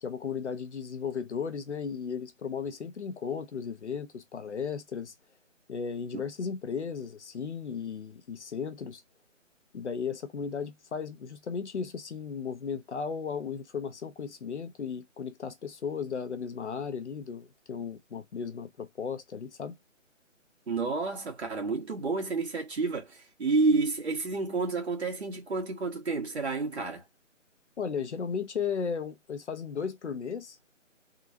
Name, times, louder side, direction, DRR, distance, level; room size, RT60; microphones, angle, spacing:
voice 1, 0.0-5.1 5.7-9.0 9.7-19.8 27.8-30.6, left 6 dB, 60° left, 0.7 m, -35 dB
voice 2, 20.7-27.0, right 3 dB, 55° right, 1.7 m, -30 dB
3.7 x 2.3 x 2.6 m
hypercardioid pair, 170°, 39 cm